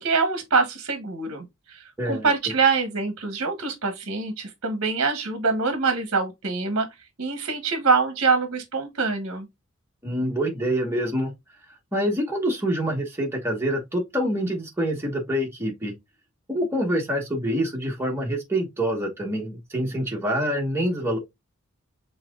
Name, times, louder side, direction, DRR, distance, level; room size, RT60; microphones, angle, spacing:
voice 1, 0.0-6.9 7.2-9.5, right 4 dB, 55° right, 1.0 m, -24 dB
voice 2, 2.0-2.3 10.0-11.3 11.9-15.9 16.5-21.2, equal, 10° right, 1.2 m, -26 dB
5.8 x 3.7 x 2.3 m
head